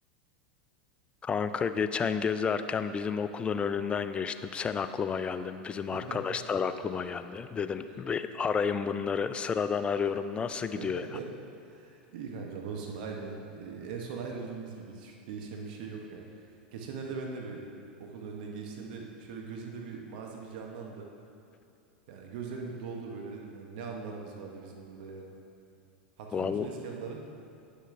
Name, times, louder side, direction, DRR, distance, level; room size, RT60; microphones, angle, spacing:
voice 1, 1.2-11.1 26.3-26.7, left 6 dB, 20° left, 10 dB, 0.3 m, -31 dB
voice 2, 5.9-6.4 10.7-11.3 11.6-16.5 16.7-17.6 18.0-21.1 22.1-25.3 26.2-27.2, right 5 dB, 65° right, 1 dB, 0.9 m, -40 dB
9.6 x 6.4 x 2.6 m, 2.6 s
hypercardioid pair, 100°, 5 cm